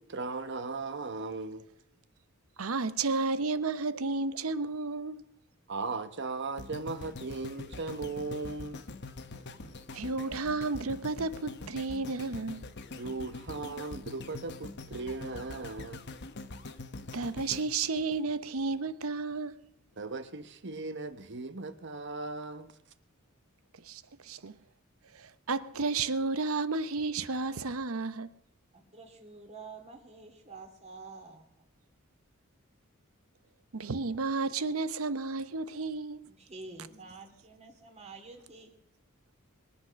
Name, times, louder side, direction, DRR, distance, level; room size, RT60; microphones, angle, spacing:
voice 1, 0.0-1.7 5.7-8.8 13.0-16.1 20.0-22.7, right 3 dB, 60° right, 1.1 m, -37 dB
voice 2, 2.6-5.2 9.9-12.6 17.1-19.6 23.8-24.6 25.1-28.3 33.7-36.3, right 3 dB, 90° right, 0.8 m, -32 dB
sound 1, 6.6-18.8 19.3-19.4, left 3 dB, 55° left, 0.9 m, -44 dB
voice 3, 28.7-31.6 36.3-38.7, right 3 dB, 30° right, 2.6 m, -48 dB
22.5 x 8.1 x 6.4 m
head